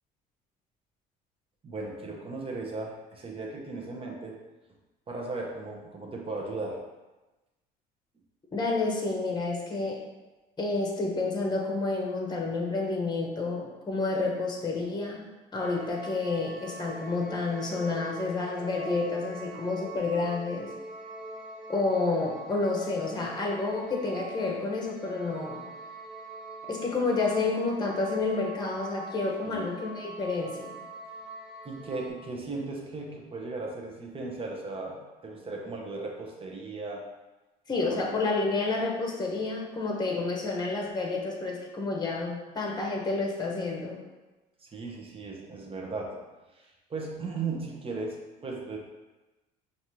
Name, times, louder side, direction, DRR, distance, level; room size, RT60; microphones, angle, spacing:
voice 1, 1.6-4.4 5.1-6.8 29.4-29.7 31.6-37.0 37.8-38.1 44.6-46.2 46.5-48.8, right 3 dB, 30° right, 0 dB, 0.9 m, -37 dB
voice 2, 8.5-10.0 10.6-15.3 15.5-20.7 21.7-25.6 26.7-30.8 37.7-44.0, left 3 dB, 20° left, -1 dB, 1.0 m, -29 dB
sound 1, 15.6-32.1, right 2 dB, 5° right, 1.2 m, -44 dB
5.2 x 2.6 x 3.1 m, 1.1 s
supercardioid pair, 80°, 19 cm